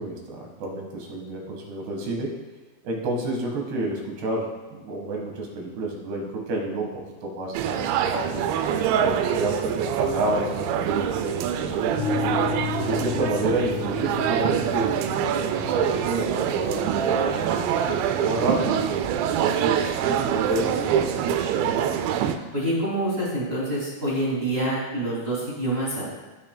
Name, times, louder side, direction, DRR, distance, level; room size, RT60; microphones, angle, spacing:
voice 1, 0.0-2.4 2.8-8.4 9.0-12.4 12.9-17.6 18.2-18.8 19.2-21.7, right 2 dB, 70° right, -1 dB, 3.6 m, -30 dB
sound 1, 7.5-22.4, right 8 dB, 90° right, 2.9 m, -25 dB
sound 2, 12.0-19.9, left 5 dB, 65° left, 2.0 m, -35 dB
voice 2, 22.5-26.1, right 1 dB, 25° right, -8 dB, 1.3 m, -26 dB
16.5 x 6.0 x 2.3 m, 1.2 s
omnidirectional pair, 5.0 m